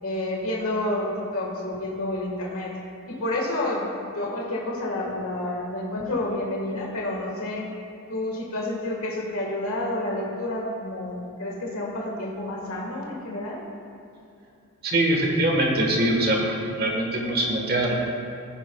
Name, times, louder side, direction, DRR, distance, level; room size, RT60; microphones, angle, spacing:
voice 1, 0.0-2.8 3.1-7.7 8.1-13.6, left 1 dB, 70° left, -2 dB, 1.6 m, -29 dB
voice 2, 14.8-16.4 16.6-17.9, right 1 dB, 45° right, 0 dB, 1.3 m, -23 dB
16.0 x 9.3 x 2.3 m, 2.5 s
head